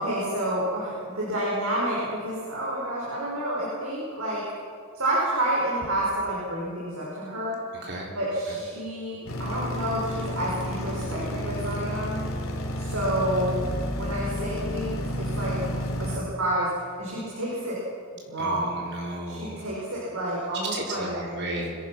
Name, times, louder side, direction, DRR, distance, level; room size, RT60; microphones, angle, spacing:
voice 1, 0.0-4.4 4.9-7.5 8.1-12.2 12.8-13.6 14.0-15.6 16.0-16.7 17.0-17.8 18.3-18.8 19.3-21.1, right 1 dB, 85° right, -5 dB, 6.0 m, -29 dB
voice 2, 7.7-8.1 8.5-8.6 18.4-19.7 20.7-21.8, right 1 dB, 55° right, 0 dB, 4.1 m, -34 dB
sound 1, 9.3-16.2, left 1 dB, 70° left, 3.2 m, -31 dB
25.5 x 17.0 x 6.0 m, 2.3 s
head